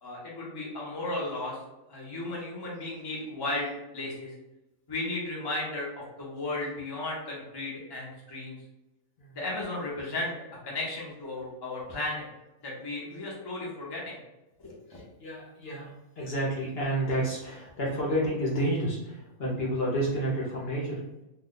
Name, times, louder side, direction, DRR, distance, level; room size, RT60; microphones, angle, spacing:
voice 1, 0.0-1.6 1.9-4.3 4.9-8.6 9.3-10.4 10.6-12.3 12.6-14.2 14.6-14.7, left 2 dB, 25° left, -4 dB, 0.5 m, -35 dB
voice 2, 14.9-21.0, right 1 dB, 50° left, -4 dB, 0.9 m, -30 dB
2.7 x 2.2 x 3.8 m, 0.97 s
omnidirectional pair, 1.5 m